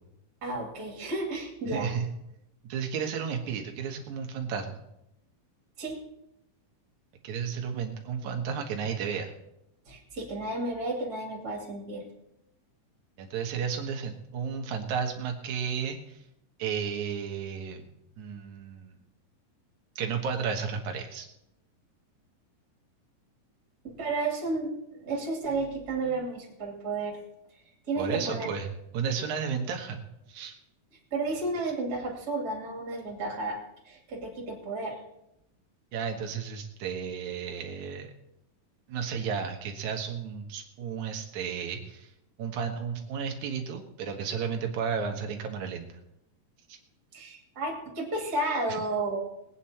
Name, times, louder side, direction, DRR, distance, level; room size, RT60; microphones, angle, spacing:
voice 1, 0.4-1.9 5.8-6.0 9.9-12.0 23.8-27.2 27.6-28.5 31.1-33.6 33.8-35.0 47.1-49.2, right 2 dB, 30° right, 0 dB, 2.8 m, -32 dB
voice 2, 1.7-2.1 2.6-4.8 7.2-9.3 13.2-16.2 16.6-17.9 18.2-19.0 20.0-21.3 28.0-28.7 28.9-30.0 30.3-30.6 35.9-38.1 38.9-42.1 42.4-45.9 46.7-46.8, right 6 dB, 65° right, 4 dB, 2.6 m, -33 dB
20.0 x 9.2 x 4.4 m, 0.84 s
omnidirectional pair, 3.9 m